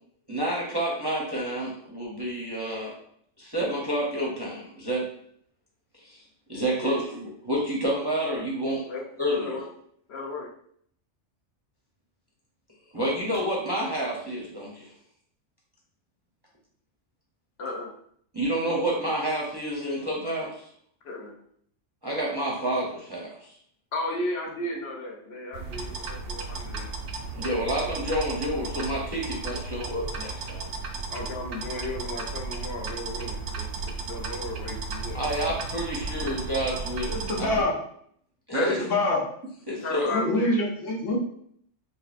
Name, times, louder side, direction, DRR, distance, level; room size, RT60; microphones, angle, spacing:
voice 1, 0.3-2.9 3.4-5.1 6.0-6.2 6.5-8.8 9.2-9.6 12.9-14.9 18.3-20.6 22.0-23.5 27.3-30.7 35.1-37.7 38.5-38.8 39.7-40.1, right 1 dB, 25° right, -4 dB, 0.5 m, -29 dB
voice 2, 10.1-10.5 17.6-17.9 21.0-21.4 23.9-26.9 31.1-35.2 35.5-35.6 36.7-36.8 38.5-38.9 39.7-40.6, left 2 dB, 65° left, 0 dB, 0.9 m, -34 dB
sound 1, 25.5-37.6, right 4 dB, 65° right, 0.7 m, -34 dB
voice 3, 37.1-37.8 38.6-39.2 40.1-41.2, left 2 dB, 85° left, -1 dB, 1.2 m, -26 dB
5.1 x 2.1 x 2.5 m, 0.65 s
omnidirectional pair, 1.3 m